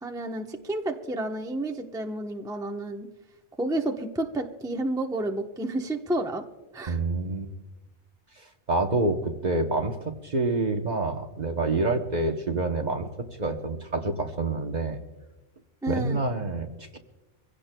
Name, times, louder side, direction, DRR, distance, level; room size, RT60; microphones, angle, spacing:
voice 1, 0.0-3.1 3.6-6.4 6.7-7.0 15.8-16.2, right 1 dB, 5° right, 3 dB, 0.8 m, -30 dB
voice 2, 6.9-7.5 8.4-10.0 10.2-13.1 13.4-15.0 15.9-17.0, right 2 dB, 40° right, 4 dB, 1.0 m, -27 dB
24.5 x 16.5 x 2.2 m, 1.1 s
omnidirectional pair, 1.2 m